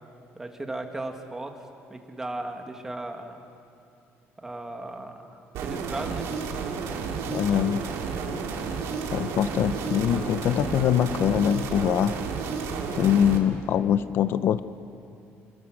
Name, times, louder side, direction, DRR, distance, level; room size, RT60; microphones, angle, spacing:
voice 1, 0.3-1.6 1.9-3.4 4.4-6.3, right 2 dB, 10° right, 4 dB, 1.7 m, -36 dB
sound 1, 5.5-13.4, right 5 dB, 80° right, 2.9 m, -31 dB
voice 2, 7.3-7.8 9.1-12.1 12.9-14.6, left 9 dB, 50° left, 13 dB, 0.6 m, -23 dB
28.0 x 21.0 x 6.3 m, 2.6 s
cardioid pair, 165°, 5 cm